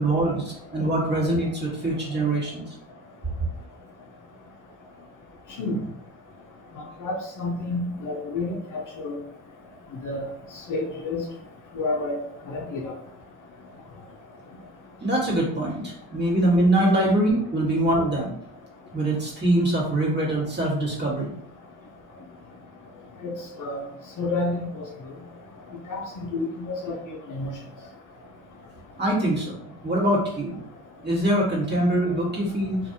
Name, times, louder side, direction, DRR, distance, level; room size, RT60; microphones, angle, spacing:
voice 1, 0.0-2.7 3.4-3.5 15.0-18.3 18.9-21.3 29.0-29.6 29.8-30.6 31.0-32.8, right 1 dB, 25° right, -5 dB, 1.3 m, -23 dB
voice 2, 6.8-9.2 10.0-10.3 10.7-11.2 11.8-12.2 12.5-12.9 23.2-23.3 23.6-23.8 24.2-24.9 25.9-26.0 26.3-27.5, left 2 dB, 45° left, 1 dB, 0.6 m, -29 dB
2.5 x 2.5 x 2.6 m, 0.70 s
supercardioid pair, 75°, 42 cm